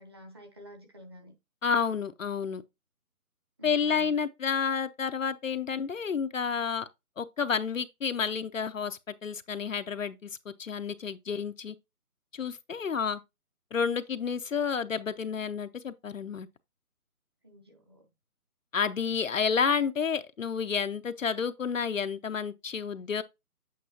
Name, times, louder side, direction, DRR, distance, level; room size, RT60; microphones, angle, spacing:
voice 1, 0.0-1.3 3.6-4.2 17.4-18.1, equal, 15° right, 1.0 m, -50 dB
voice 2, 1.6-2.6 3.6-6.9 7.2-10.3 10.6-11.8 12.3-13.2 13.7-16.5 18.7-23.2, left 6 dB, 60° left, 0.6 m, -30 dB
8.5 x 5.3 x 2.7 m
hypercardioid pair, 170°, 45 cm